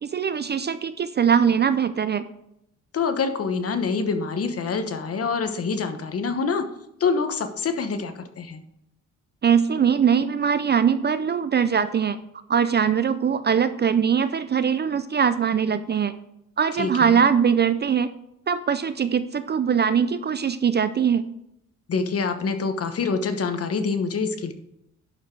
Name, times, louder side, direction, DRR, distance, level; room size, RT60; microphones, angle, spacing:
voice 1, 0.0-2.2 9.4-12.2 12.5-16.1 16.6-18.1 18.5-21.3, right 7 dB, 35° right, 12 dB, 0.4 m, -21 dB
voice 2, 2.9-6.7 7.0-8.6 16.8-17.2 21.9-24.5, left 5 dB, 45° left, 8 dB, 1.0 m, -26 dB
11.0 x 4.8 x 4.7 m, 0.80 s
cardioid pair, 110°, 32 cm